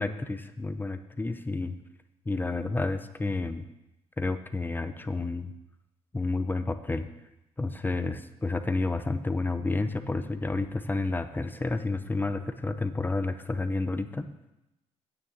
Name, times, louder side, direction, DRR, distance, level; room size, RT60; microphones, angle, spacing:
voice 1, 0.0-1.8 2.3-3.7 4.2-5.5 6.1-7.1 7.6-14.3, left 3 dB, 15° left, 9 dB, 0.7 m, -30 dB
8.9 x 7.0 x 8.3 m, 0.94 s
cardioid pair, 100°, 12 cm